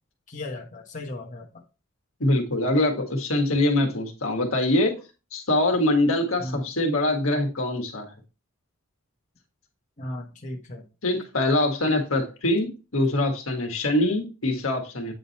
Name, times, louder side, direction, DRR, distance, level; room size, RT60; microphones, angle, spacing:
voice 1, 0.3-1.5 6.4-6.7 10.0-10.8, left 1 dB, 40° left, 1.2 m, -36 dB
voice 2, 2.2-4.9 5.3-8.1 11.0-15.1, left 1 dB, 70° left, 1.7 m, -23 dB
8.7 x 3.9 x 4.2 m
head